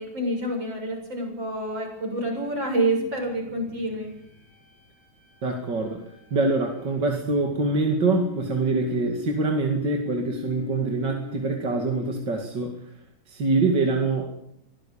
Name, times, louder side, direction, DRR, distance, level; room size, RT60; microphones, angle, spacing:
voice 1, 0.0-4.1, right 1 dB, 90° right, 3 dB, 7.7 m, -27 dB
sound 1, 1.6-12.7, left 14 dB, 40° left, 7.1 m, -43 dB
voice 2, 5.4-6.0 6.3-12.8 13.3-14.4, right 3 dB, 70° right, 2 dB, 3.1 m, -25 dB
24.0 x 17.5 x 8.7 m, 0.77 s
omnidirectional pair, 2.0 m